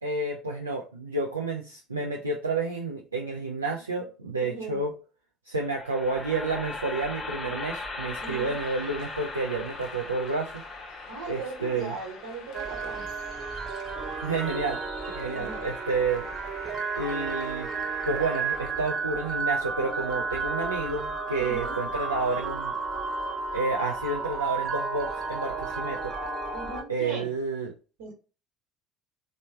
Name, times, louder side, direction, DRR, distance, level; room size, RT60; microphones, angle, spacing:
voice 1, 0.0-4.9 5.5-10.6 11.3-11.9 14.2-14.8 15.2-16.3 17.0-17.7 18.1-22.7 23.5-26.1 26.9-27.7, right 3 dB, 90° right, 0 dB, 0.3 m, -30 dB
voice 2, 4.4-4.9 8.2-8.5 11.1-13.1 15.3-15.7 21.4-21.8 26.5-27.3 28.0-28.1, right 3 dB, 70° right, 1 dB, 1.1 m, -38 dB
sound 1, 5.5-15.7, left 3 dB, 20° left, 0.7 m, -40 dB
sound 2, 8.1-18.6, left 6 dB, 60° left, 0.5 m, -48 dB
sound 3, 12.5-26.8, right 4 dB, 35° right, 0.7 m, -32 dB
3.1 x 2.1 x 3.2 m, 0.34 s
figure-of-eight pair, 60°, 0 cm